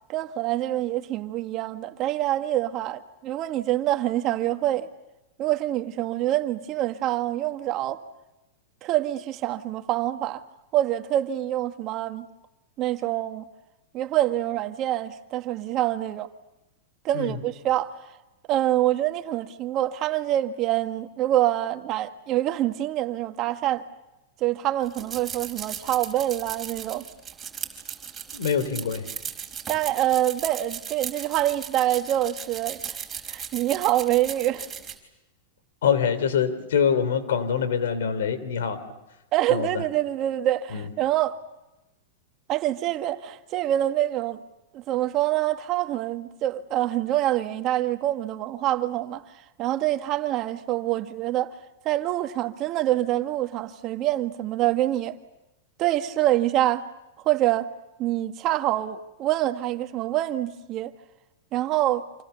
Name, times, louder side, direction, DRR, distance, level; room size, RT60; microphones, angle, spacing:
voice 1, 0.1-4.9 5.4-8.0 8.8-10.4 10.7-12.3 12.8-13.5 13.9-16.3 17.0-17.9 18.5-23.9 24.4-27.0 29.7-33.0 33.3-34.7 39.3-41.4 42.5-44.4 44.7-49.2 49.6-51.5 51.8-55.2 55.8-56.8 57.2-57.7 58.0-60.9 61.5-62.0, right 14 dB, 40° right, 1.6 m, -25 dB
sound 1, 24.8-34.9, right 8 dB, 20° right, 4.5 m, -37 dB
voice 2, 28.3-29.0 35.8-38.8 39.5-39.8 40.7-40.8, left 7 dB, 85° left, 3.2 m, -24 dB
29.0 x 27.0 x 6.9 m
hypercardioid pair, 130°, 0 cm